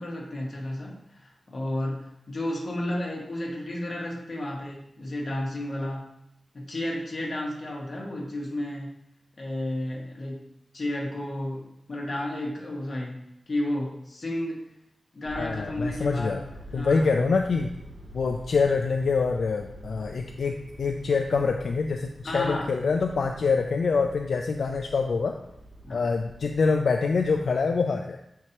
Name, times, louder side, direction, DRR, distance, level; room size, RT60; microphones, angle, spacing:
voice 1, 0.0-6.1 6.5-8.9 9.4-10.4 10.7-14.6 15.1-16.3 16.7-17.3 22.2-22.6 25.8-26.1, left 1 dB, 45° left, -3 dB, 1.4 m, -32 dB
sound 1, 15.2-27.8, right 1 dB, 80° right, 1.5 m, -46 dB
voice 2, 15.3-16.4 16.7-17.7 18.1-25.4 25.9-28.2, left 4 dB, 70° left, 4 dB, 0.3 m, -25 dB
7.4 x 4.6 x 2.9 m, 0.81 s
wide cardioid pair, 135°, 0 cm